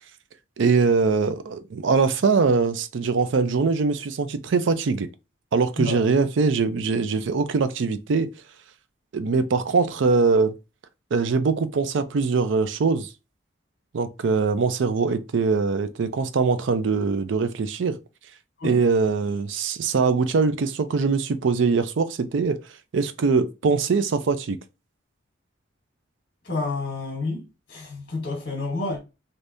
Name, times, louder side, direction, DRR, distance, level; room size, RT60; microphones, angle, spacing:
voice 1, 0.6-5.1 5.5-8.3 9.1-10.5 11.1-13.1 13.9-18.0 18.6-22.6 22.9-24.6, right 4 dB, 75° right, 0.4 m, -22 dB
voice 2, 26.4-29.0, left 3 dB, 45° left, 1.1 m, -29 dB
3.3 x 2.7 x 2.6 m
head